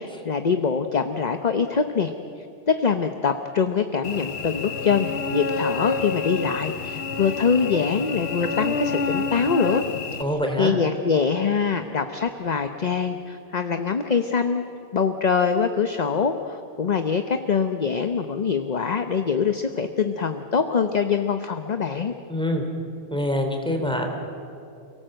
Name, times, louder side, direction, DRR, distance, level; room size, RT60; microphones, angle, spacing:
voice 1, 0.0-2.1 2.7-9.8 10.2-14.6 14.9-22.1, left 6 dB, 45° left, 7 dB, 0.9 m, -24 dB
Cricket / Buzz, 4.0-10.2, left 5 dB, 75° left, 1.2 m, -28 dB
voice 2, 10.2-10.7 22.3-22.6 23.1-24.1, left 1 dB, 5° left, 3 dB, 2.9 m, -25 dB
29.5 x 18.0 x 7.8 m, 2.6 s
omnidirectional pair, 1.1 m